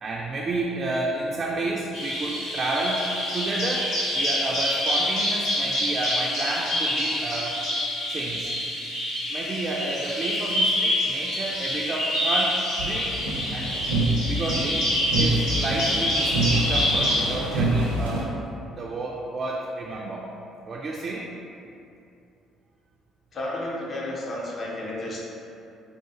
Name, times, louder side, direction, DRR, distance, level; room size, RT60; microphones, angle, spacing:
voice 1, 0.0-7.6 8.1-8.6 9.3-13.2 13.5-13.9 14.3-14.9 15.2-18.3 18.8-20.3 20.7-21.3, right 2 dB, 35° right, -2 dB, 0.3 m, -31 dB
Bird vocalization bird call bird song, 1.9-17.4, left 1 dB, 70° left, 1.2 m, -26 dB
sound 1, 12.8-18.2, right 2 dB, 85° right, 0.6 m, -26 dB
voice 2, 23.3-25.2, left 1 dB, 40° left, -4 dB, 0.7 m, -32 dB
4.6 x 2.3 x 2.8 m, 2.7 s
figure-of-eight pair, 50°, 0 cm